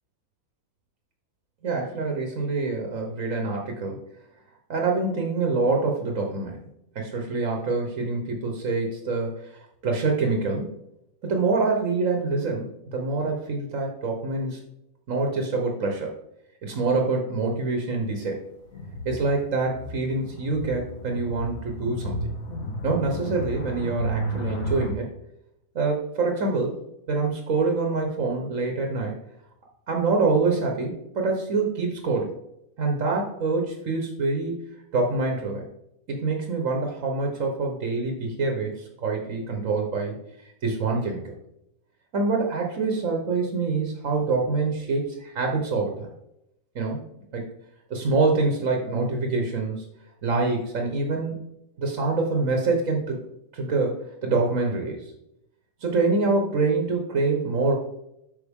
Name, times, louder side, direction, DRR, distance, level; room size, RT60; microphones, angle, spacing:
voice 1, 1.6-4.0 4.7-6.6 6.9-9.5 9.8-10.7 11.2-14.6 15.1-16.1 16.6-18.4 19.0-22.2 22.8-25.1 25.7-26.7 27.1-29.2 29.9-32.3 32.8-34.6 34.9-35.6 36.1-40.2 40.6-41.2 42.1-46.1 46.7-47.0 47.3-47.5 47.9-49.8 50.2-51.4 51.8-53.2 53.5-55.0 55.8-57.7, right 3 dB, 65° right, 1 dB, 1.5 m, -25 dB
sound 1, 18.7-24.9, equal, 65° left, 1.6 m, -32 dB
8.4 x 5.8 x 3.6 m, 0.81 s
omnidirectional pair, 1.6 m